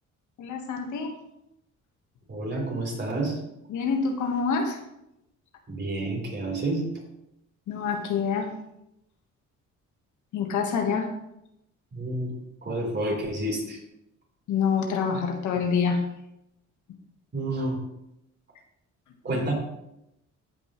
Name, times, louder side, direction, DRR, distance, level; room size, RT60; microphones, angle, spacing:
voice 1, 0.4-1.1 3.7-4.8 7.7-8.5 10.3-11.1 14.5-16.0 19.3-19.4, left 5 dB, 75° left, 3 dB, 1.5 m, -26 dB
voice 2, 2.3-3.4 5.7-7.0 11.9-12.3 12.6-13.8 17.3-17.8 19.2-19.5, right 2 dB, 35° right, -1 dB, 3.8 m, -29 dB
15.0 x 5.4 x 3.1 m, 0.84 s
cardioid pair, 90°, 30 cm